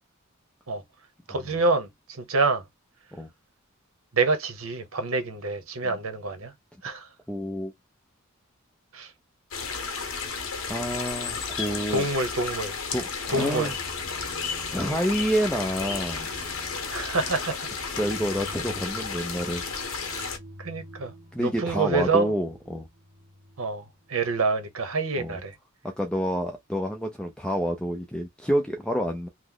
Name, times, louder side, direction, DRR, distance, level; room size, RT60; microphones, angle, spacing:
voice 1, 1.3-2.6 4.1-6.5 6.8-7.1 8.9-9.1 11.9-12.8 13.3-13.7 16.9-17.7 20.0-20.3 20.6-22.3 23.6-25.5, right 3 dB, 80° right, 0.8 m, -27 dB
voice 2, 7.3-7.7 10.7-12.1 12.9-13.7 14.7-16.3 17.9-19.6 21.3-22.9 25.2-25.4 26.0-29.3, equal, 5° left, 0.4 m, -28 dB
sound 1, 9.5-20.4, left 5 dB, 80° left, 0.8 m, -33 dB
sound 2, 13.7-24.4, right 1 dB, 40° right, 1.0 m, -48 dB
3.0 x 2.0 x 3.7 m
head